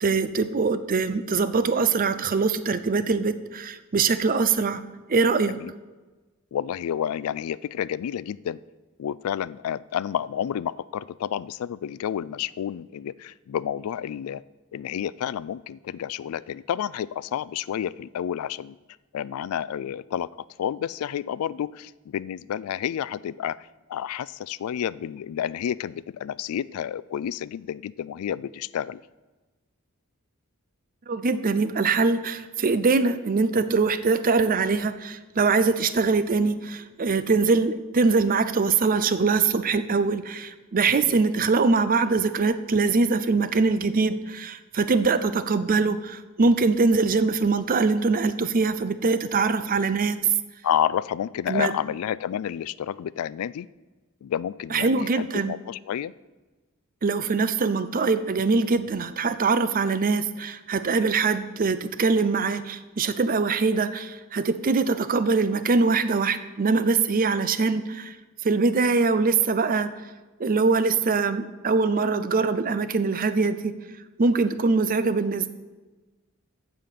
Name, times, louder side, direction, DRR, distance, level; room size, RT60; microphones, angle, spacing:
voice 1, 0.0-4.8 5.1-5.5 31.1-50.2 51.5-51.7 54.7-55.5 57.0-68.1 68.4-69.9 70.4-73.7 74.2-75.5, right 4 dB, 40° right, 12 dB, 0.5 m, -23 dB
voice 2, 6.5-8.6 9.0-14.4 14.7-18.8 19.1-29.0 40.9-41.1 50.6-53.7 54.2-56.1, left 9 dB, 85° left, 20 dB, 0.3 m, -30 dB
14.5 x 5.1 x 5.8 m, 1.2 s
head